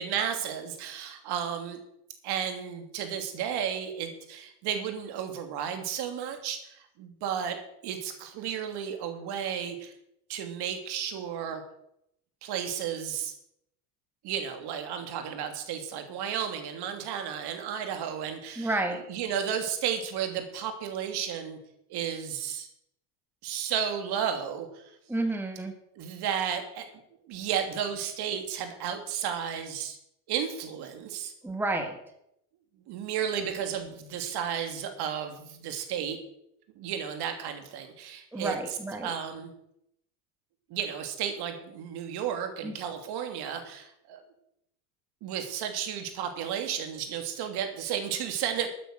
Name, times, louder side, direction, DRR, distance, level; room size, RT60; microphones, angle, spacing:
voice 1, 0.0-1.8 2.2-7.6 7.8-9.9 10.3-11.6 12.4-13.3 14.2-18.7 19.1-21.6 21.9-22.7 23.4-25.0 26.0-26.9 27.3-30.0 30.3-31.3 32.9-36.2 36.7-38.6 39.0-39.5 40.7-44.2 45.2-48.7, right 8 dB, 55° right, 6 dB, 3.0 m, -33 dB
voice 2, 18.6-19.0 25.1-25.7 31.4-32.0 38.3-39.1 42.6-42.7, right 2 dB, 5° right, 5 dB, 1.7 m, -30 dB
13.0 x 9.1 x 6.6 m, 0.78 s
hypercardioid pair, 100°, 48 cm